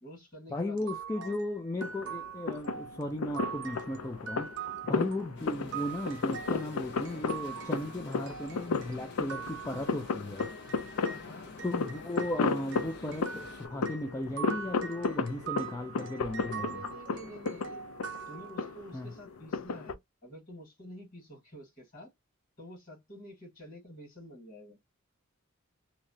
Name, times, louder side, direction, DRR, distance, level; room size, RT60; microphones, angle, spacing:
voice 1, 0.0-0.9 1.2-1.4 11.0-11.6 16.5-17.8 18.3-22.1 22.6-24.8, equal, 40° left, 1.7 m, -49 dB
voice 2, 0.5-4.5 4.9-10.5 11.6-16.8 18.9-19.1, left 1 dB, 15° left, 0.3 m, -36 dB
sound 1, 0.8-11.3 11.6-19.0, right 7 dB, 55° right, 0.6 m, -43 dB
sound 2, 1.8-19.9, left 4 dB, 90° left, 0.4 m, -35 dB
sound 3, 5.4-13.7, left 2 dB, 55° left, 0.8 m, -49 dB
2.8 x 2.1 x 2.6 m
head